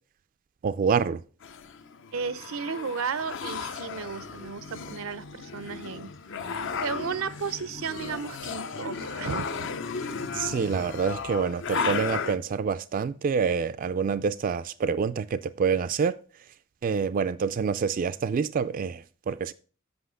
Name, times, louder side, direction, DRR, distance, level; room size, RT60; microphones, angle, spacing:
voice 1, 0.6-1.2 10.3-16.2 16.8-19.5, right 6 dB, 40° right, 0.3 m, -27 dB
sound 1, 1.4-12.4, left 5 dB, 65° left, 0.7 m, -35 dB
voice 2, 2.1-6.1 6.5-9.7, right 5 dB, 85° right, 0.6 m, -34 dB
8.0 x 5.7 x 4.9 m
head